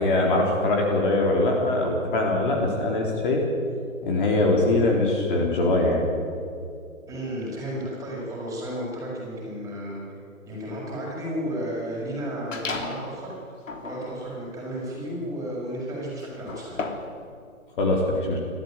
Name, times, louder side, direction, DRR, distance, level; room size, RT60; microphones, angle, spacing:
voice 1, 0.0-3.4 4.0-6.0 17.8-18.0 18.3-18.4, left 2 dB, 40° left, 0 dB, 3.9 m, -22 dB
voice 2, 7.1-10.2 10.5-13.4 13.8-16.9, equal, 10° right, -5 dB, 6.5 m, -33 dB
sound 1, 12.5-13.1 13.6-17.2, left 3 dB, 65° left, 3.4 m, -35 dB
28.0 x 13.5 x 9.2 m, 2.4 s
hypercardioid pair, 145°, 41 cm